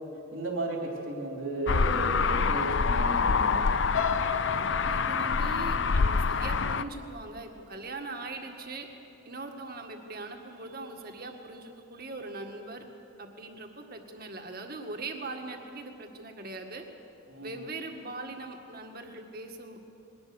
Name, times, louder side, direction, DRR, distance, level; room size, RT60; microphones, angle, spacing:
voice 1, 0.3-3.7 17.3-17.6, right 2 dB, 70° right, 0 dB, 2.9 m, -34 dB
sound 1, 1.7-6.8, left 5 dB, 55° left, 0.5 m, -26 dB
sound 2, 3.9-7.9 8.4-8.7 9.0-9.1, left 7 dB, 80° left, 0.9 m, -37 dB
voice 2, 4.9-8.9 9.2-12.8 13.2-16.8 17.4-19.8, right 3 dB, 45° right, 3 dB, 1.8 m, -41 dB
21.5 x 18.5 x 7.0 m, 2.7 s
head